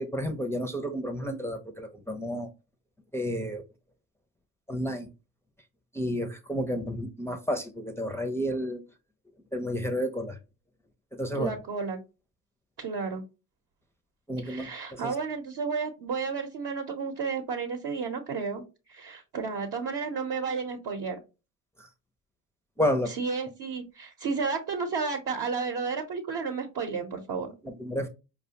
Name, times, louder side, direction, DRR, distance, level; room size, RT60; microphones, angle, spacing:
voice 1, 0.0-2.5 3.1-3.6 4.7-5.1 5.9-8.8 9.5-10.4 11.1-11.5 14.3-15.1 21.8-21.9 22.8-23.1 27.6-28.1, equal, 5° left, 0.6 m, -31 dB
voice 2, 11.3-12.0 12.8-13.2 14.4-18.6 18.9-21.2 23.1-27.5, right 5 dB, 50° right, 0.9 m, -32 dB
4.8 x 2.3 x 2.8 m
hypercardioid pair, 65°, 46 cm